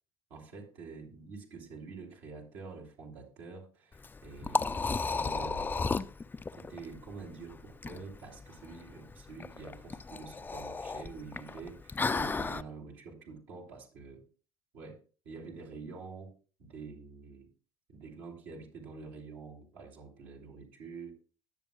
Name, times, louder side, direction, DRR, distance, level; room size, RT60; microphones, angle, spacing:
voice 1, 0.3-6.1 6.6-14.2 14.7-16.3 16.6-17.5 17.9-21.1, right 4 dB, 70° right, -1 dB, 2.7 m, -47 dB
Liquid, 3.9-12.6, left 4 dB, 15° left, 0.4 m, -35 dB
20.0 x 7.0 x 2.3 m, 0.37 s
hypercardioid pair, 70°, 13 cm